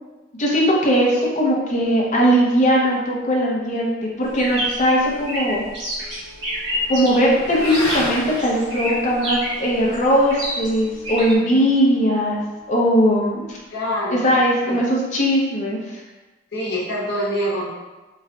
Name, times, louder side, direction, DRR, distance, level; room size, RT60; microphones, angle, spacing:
voice 1, 0.4-3.9 4.2-5.6 6.9-12.4 12.7-13.6 14.1-15.8, equal, 40° left, -3 dB, 0.7 m, -19 dB
sound 1, 4.3-11.3, equal, 60° right, 1.2 m, -28 dB
Motorcycle / Accelerating revving vroom, 4.9-13.6, left 1 dB, 90° left, 0.9 m, -36 dB
voice 2, 13.7-14.3 14.6-14.8 16.5-17.7, equal, 55° left, -6 dB, 1.1 m, -25 dB
3.1 x 2.4 x 3.7 m, 1.1 s
head